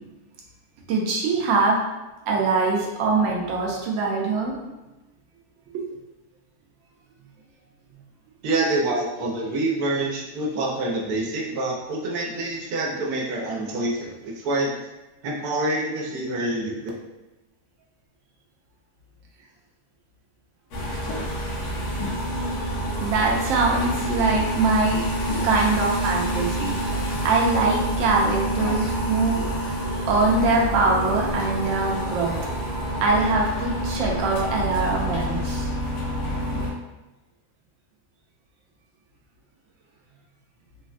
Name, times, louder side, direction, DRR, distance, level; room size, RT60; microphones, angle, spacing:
voice 1, 0.9-1.8 2.3-4.7 23.0-25.0 25.4-26.7 27.2-29.4 30.1-32.3 33.0-35.7, right 3 dB, 70° right, -2 dB, 0.9 m, -23 dB
voice 2, 8.4-14.8 15.2-16.8, right 2 dB, 90° right, -3 dB, 1.1 m, -26 dB
sound 1, 20.7-36.7, right 1 dB, 85° left, 1.2 m, -27 dB
3.3 x 2.1 x 2.4 m, 1.0 s
omnidirectional pair, 1.6 m